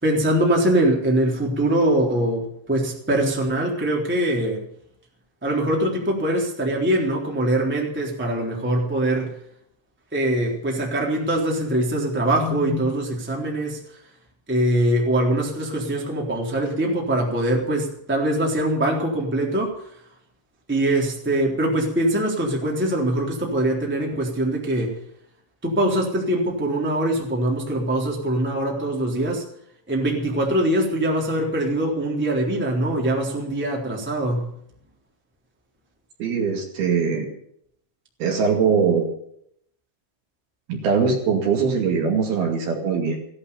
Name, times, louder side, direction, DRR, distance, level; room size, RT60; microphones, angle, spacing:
voice 1, 0.0-4.6 5.4-9.3 10.1-13.8 14.5-19.7 20.7-25.0 25.6-29.4 29.9-34.5, right 1 dB, 5° right, -1 dB, 2.9 m, -23 dB
voice 2, 36.2-37.3 38.2-39.1 40.7-43.2, right 5 dB, 60° right, 2 dB, 3.9 m, -21 dB
16.5 x 11.5 x 7.0 m, 0.69 s
omnidirectional pair, 5.2 m